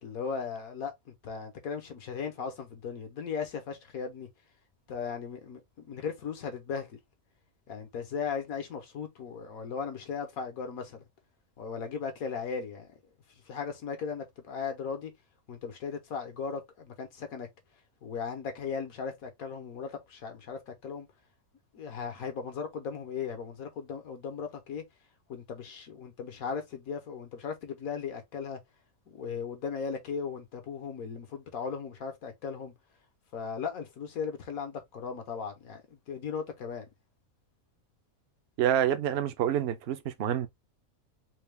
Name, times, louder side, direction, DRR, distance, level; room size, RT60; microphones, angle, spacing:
voice 1, 0.0-4.3 4.9-7.0 7.7-11.1 11.6-12.9 13.5-15.1 15.5-17.5 18.0-21.1 21.7-24.8 25.3-28.6 29.1-32.7 33.3-36.9, left 6 dB, 80° left, 1.5 m, -37 dB
voice 2, 38.6-40.5, right 10 dB, 60° right, 0.7 m, -27 dB
4.1 x 2.3 x 3.4 m
omnidirectional pair, 1.5 m